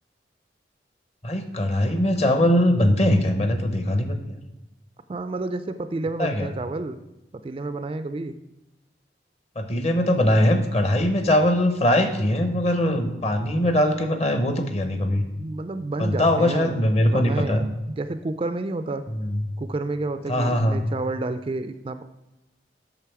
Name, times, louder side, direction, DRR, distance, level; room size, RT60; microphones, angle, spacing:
voice 1, 1.2-4.4 6.2-6.5 9.6-15.3 16.0-17.7 19.1-19.5 20.3-20.8, left 1 dB, 35° left, 7 dB, 0.8 m, -21 dB
voice 2, 5.1-7.0 7.3-8.3 13.5-13.7 15.3-16.8 17.0-19.0 19.6-22.0, right 2 dB, 30° right, 10 dB, 0.3 m, -30 dB
9.0 x 6.5 x 4.8 m, 0.97 s
head